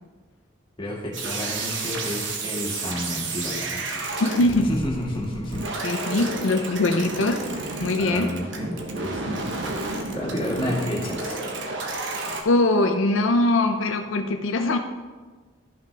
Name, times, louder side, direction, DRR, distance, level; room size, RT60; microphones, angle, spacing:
voice 1, 0.8-4.2 4.6-5.7 6.1-6.4 8.0-11.4, left 1 dB, 25° left, -4 dB, 2.0 m, -31 dB
sound 1, 1.1-12.4, right 3 dB, 70° right, 1.1 m, -31 dB
voice 2, 4.2-4.7 5.8-7.4 7.8-8.3 12.5-14.8, left 2 dB, 80° left, 5 dB, 0.6 m, -22 dB
13.0 x 5.8 x 3.4 m, 1.4 s
head